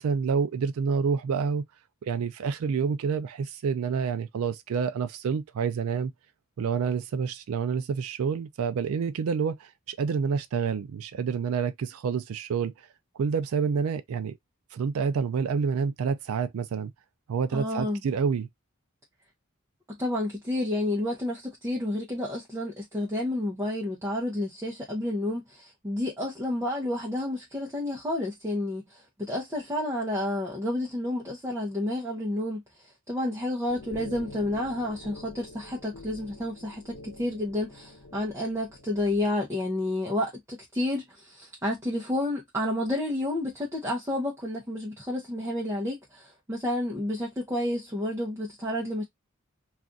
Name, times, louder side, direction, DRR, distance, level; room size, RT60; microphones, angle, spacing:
voice 1, 0.0-1.6 2.0-6.1 6.6-12.9 13.2-14.3 14.7-16.9 17.3-18.5, right 6 dB, 80° right, 0.4 m, -28 dB
voice 2, 17.5-18.0 20.0-32.6 33.1-49.0, left 1 dB, 15° right, 0.6 m, -30 dB
sound 1, 33.7-39.3, left 2 dB, 75° left, 0.8 m, -46 dB
2.4 x 2.4 x 3.7 m
head